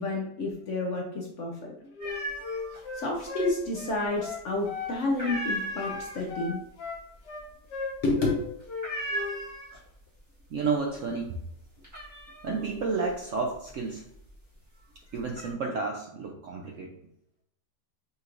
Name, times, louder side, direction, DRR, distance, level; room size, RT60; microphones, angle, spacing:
voice 1, 0.0-1.9 2.9-6.6 8.0-8.4, left 2 dB, 60° left, 0 dB, 0.8 m, -30 dB
Wind instrument woodwind instrument, 2.0-5.0 5.2-5.5 5.8-8.4 8.7-9.4, left 4 dB, 90° left, 1.6 m, -36 dB
sound 1, 2.0-2.8 3.1-3.9 4.3-4.6 5.0-10.1 10.4-10.9 11.3-14.4 14.9-15.5, equal, 10° right, 1.2 m, -37 dB
voice 2, 10.5-11.4 12.4-14.0 15.1-16.9, right 4 dB, 70° right, 1 dB, 0.7 m, -31 dB
5.7 x 3.0 x 2.5 m, 0.76 s
omnidirectional pair, 1.8 m